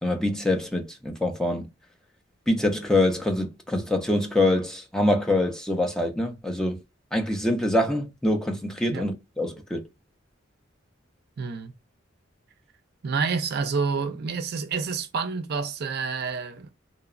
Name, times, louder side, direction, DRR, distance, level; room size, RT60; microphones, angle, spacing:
voice 1, 0.0-1.7 2.5-6.8 7.1-9.8, left 1 dB, 5° left, 0.4 m, -25 dB
voice 2, 11.4-11.7 13.0-16.7, right 5 dB, 55° right, 0.4 m, -28 dB
2.7 x 2.1 x 2.4 m
head